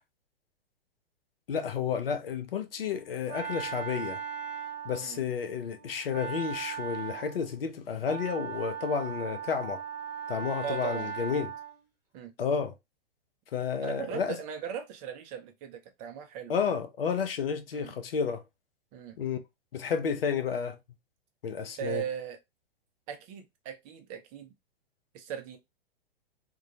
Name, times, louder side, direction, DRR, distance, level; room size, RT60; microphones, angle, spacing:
voice 1, 1.5-4.2 4.8-9.8 10.3-11.5 12.4-12.7 13.5-14.4 16.5-18.4 19.2-19.4 19.7-20.8 21.4-22.0, left 6 dB, 70° left, 0.6 m, -31 dB
Wind instrument woodwind instrument, 2.7-11.8, right 7 dB, 10° right, 1.0 m, -39 dB
voice 2, 10.6-11.5 12.1-12.3 13.8-16.5 17.7-17.9 18.9-19.2 21.8-22.4 23.1-24.5 25.1-25.6, right 9 dB, 25° right, 0.5 m, -38 dB
2.3 x 2.2 x 2.7 m
figure-of-eight pair, 110°, 30 cm